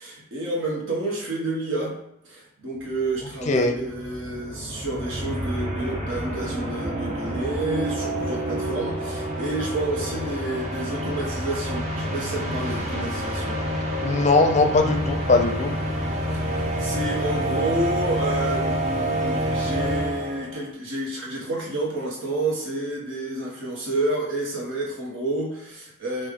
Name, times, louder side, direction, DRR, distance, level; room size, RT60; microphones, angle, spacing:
voice 1, 0.0-2.0 2.2-13.5 16.3-26.3, right 2 dB, 80° right, -3 dB, 1.3 m, -29 dB
sound 1, 2.9-3.0 3.2-20.6, right 1 dB, 35° right, 0.9 m, -28 dB
voice 2, 14.0-15.7, left 3 dB, 35° left, 5 dB, 0.5 m, -20 dB
5.2 x 2.6 x 3.7 m, 0.78 s
head